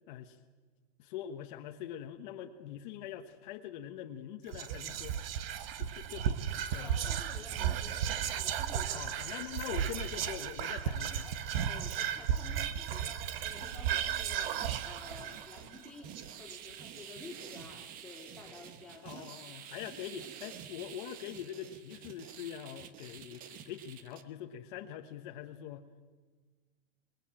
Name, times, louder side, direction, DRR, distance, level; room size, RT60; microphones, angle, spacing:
voice 1, 1.0-5.2 5.8-6.4 6.7-7.0 8.9-11.3 12.4-12.6 19.0-25.9, left 10 dB, 45° left, 4 dB, 1.3 m, -43 dB
Whispering, 4.5-17.0, right 9 dB, 60° right, 1.4 m, -35 dB
voice 2, 6.8-9.1 9.7-9.9 10.6-11.4 11.6-19.9, left 3 dB, 5° left, -2 dB, 3.3 m, -52 dB
sound 1, 13.1-24.2, right 9 dB, 25° right, 1.1 m, -49 dB
27.0 x 21.0 x 9.0 m, 1.4 s
supercardioid pair, 170°, 32 cm